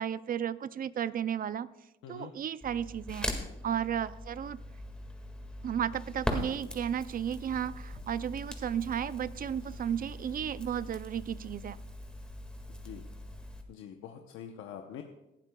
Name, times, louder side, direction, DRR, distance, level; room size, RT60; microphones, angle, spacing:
voice 1, 0.0-1.7 2.1-3.3 3.6-4.6 5.6-11.8, right 9 dB, 45° right, 16 dB, 0.4 m, -33 dB
Crackle, 2.6-13.6, left 1 dB, 5° left, 1.8 m, -41 dB
voice 2, 12.7-13.0 13.7-15.0, left 9 dB, 90° left, 4 dB, 0.8 m, -45 dB
19.0 x 11.5 x 2.3 m, 0.93 s
cardioid pair, 90°, 20 cm